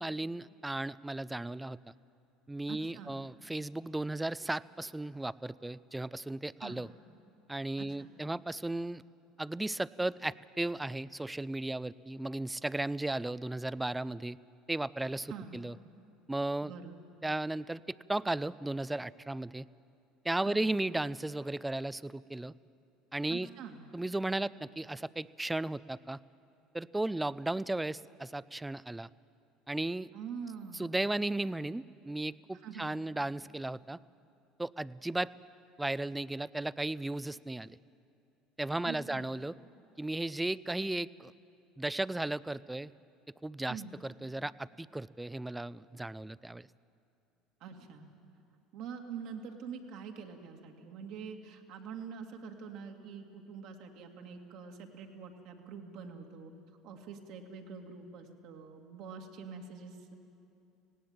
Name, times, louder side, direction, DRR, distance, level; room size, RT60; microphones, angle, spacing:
voice 1, 0.0-1.8 2.5-6.9 7.5-9.0 9.4-14.4 14.7-15.8 16.3-16.7 17.2-19.7 20.2-22.5 23.1-23.5 23.9-26.2 26.7-29.1 29.7-30.1 30.7-34.0 34.6-35.3 35.8-37.8 38.6-39.5 40.0-41.3 41.8-42.9 43.4-46.7, right 2 dB, 10° right, 19 dB, 0.4 m, -35 dB
voice 2, 2.7-3.2 6.6-6.8 7.8-8.1 15.3-15.6 16.6-16.9 20.5-20.7 23.3-23.8 30.1-31.0 32.6-32.9 38.8-39.2 43.7-43.9 47.6-48.1 48.7-56.5 56.8-60.1, right 6 dB, 65° right, 3 dB, 2.2 m, -45 dB
18.0 x 17.5 x 8.9 m, 2.7 s
hypercardioid pair, 70°, 0 cm